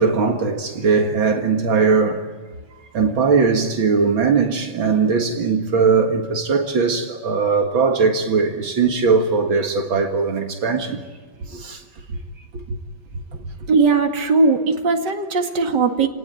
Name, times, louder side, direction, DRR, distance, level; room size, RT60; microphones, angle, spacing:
voice 1, 0.0-2.3 2.9-11.0 11.5-11.8 12.1-12.2 12.7-12.8, right 5 dB, 80° right, 2.6 m, -19 dB
voice 2, 13.7-16.1, right 4 dB, 60° right, 2.7 m, -18 dB
30.0 x 19.0 x 9.3 m
omnidirectional pair, 2.2 m